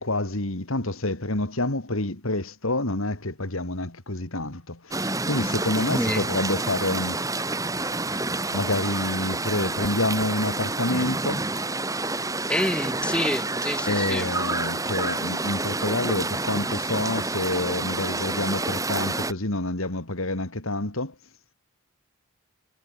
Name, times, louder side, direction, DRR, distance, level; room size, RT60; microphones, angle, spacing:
voice 1, 0.0-7.2 8.5-11.5 13.9-21.1, left 2 dB, 65° left, 3.0 m, -28 dB
sound 1, 4.9-19.3, right 2 dB, 15° right, 3.0 m, -28 dB
voice 2, 5.8-6.2 12.5-14.3, left 1 dB, 5° left, 3.2 m, -27 dB
head